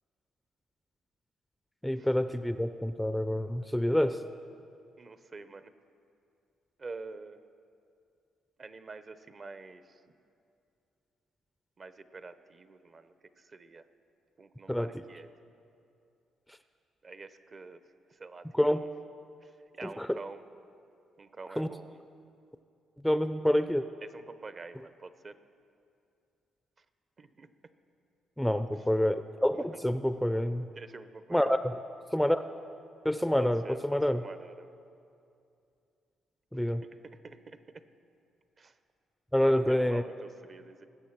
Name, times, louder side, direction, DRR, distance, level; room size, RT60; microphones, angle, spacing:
voice 1, 1.8-4.2 14.7-14.9 18.5-18.8 19.8-20.2 21.6-21.7 23.0-23.8 28.4-30.7 31.3-31.8 32.1-32.4 33.0-34.2 36.5-36.8 39.3-40.0, equal, ahead, 11 dB, 0.4 m, -27 dB
voice 2, 5.0-5.7 6.8-7.4 8.6-10.0 11.8-13.8 14.4-15.3 17.0-17.8 18.1-18.8 19.4-20.4 21.2-22.0 24.0-25.4 27.2-27.5 29.5-29.7 30.8-31.6 33.4-34.8 37.0-37.8 38.6-38.8 39.4-40.9, right 3 dB, 40° right, 12 dB, 0.7 m, -47 dB
20.0 x 7.8 x 5.9 m, 2.5 s
cardioid pair, 90°, 0 cm